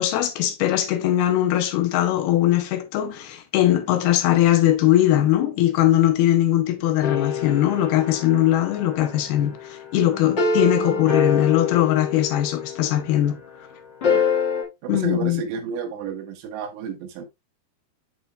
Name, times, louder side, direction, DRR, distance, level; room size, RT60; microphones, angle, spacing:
voice 1, 0.0-13.4 14.9-15.4, left 12 dB, 80° left, 2.5 m, -20 dB
sound 1, 7.0-13.3 14.0-14.6, left 5 dB, 60° left, 1.1 m, -26 dB
voice 2, 14.8-17.3, right 6 dB, 80° right, 3.3 m, -31 dB
7.8 x 6.0 x 2.3 m
omnidirectional pair, 4.9 m